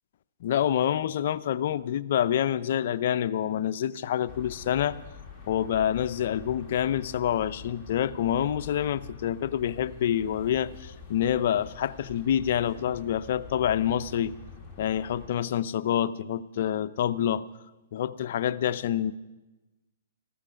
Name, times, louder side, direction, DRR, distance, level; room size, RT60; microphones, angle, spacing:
voice 1, 0.4-5.0 5.5-14.3 14.8-17.4 17.9-19.1, left 10 dB, 55° left, 12 dB, 0.5 m, -27 dB
sound 1, 4.3-15.3, left 5 dB, 5° left, 2.1 m, -46 dB
14.5 x 12.5 x 5.1 m, 1.1 s
hypercardioid pair, 150°, 0 cm